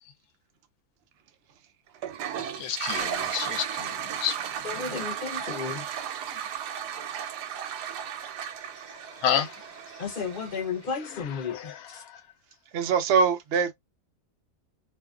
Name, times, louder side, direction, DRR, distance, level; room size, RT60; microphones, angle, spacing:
Toilet flush, 1.9-10.8, right 9 dB, 90° right, 1.2 m, -35 dB
voice 1, 2.6-3.9 4.2-4.4 9.2-9.6 11.5-12.2, left 9 dB, 70° left, 1.0 m, -29 dB
voice 2, 4.6-6.0 10.0-12.0, left 5 dB, 45° left, 0.7 m, -33 dB
voice 3, 12.7-13.7, right 6 dB, 65° right, 0.6 m, -23 dB
2.7 x 2.4 x 2.3 m
omnidirectional pair, 1.7 m